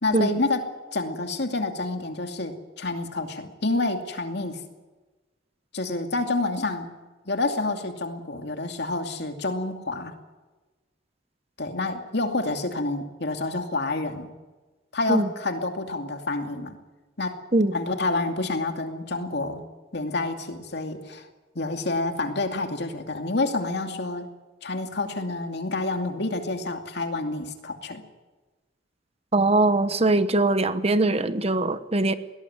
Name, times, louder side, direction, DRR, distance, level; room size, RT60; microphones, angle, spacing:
voice 1, 0.0-0.6 0.9-4.6 5.7-6.9 7.3-10.1 11.6-14.3 14.9-16.8 17.2-17.4 17.7-19.6 19.9-21.3 21.5-24.2 24.6-28.0, left 2 dB, 65° left, 5 dB, 2.5 m, -28 dB
voice 2, 29.3-32.1, right 2 dB, 35° right, 12 dB, 1.1 m, -21 dB
21.0 x 18.0 x 9.4 m, 1.2 s
head